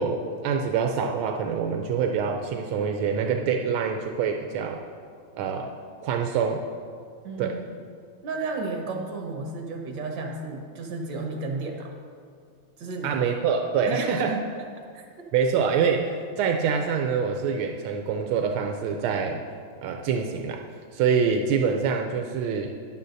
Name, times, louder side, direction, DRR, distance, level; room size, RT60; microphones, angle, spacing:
voice 1, 0.0-4.8 5.4-5.7 6.0-6.6 7.4-7.6 13.0-14.3 15.3-19.4 19.8-20.6 20.9-22.7, right 6 dB, 85° right, 3 dB, 1.5 m, -25 dB
voice 2, 7.2-7.7 8.2-11.9 12.8-13.2 13.9-14.4 14.9-15.3, right 3 dB, 65° right, 2 dB, 1.9 m, -32 dB
12.5 x 10.0 x 2.6 m, 2.2 s
omnidirectional pair, 2.3 m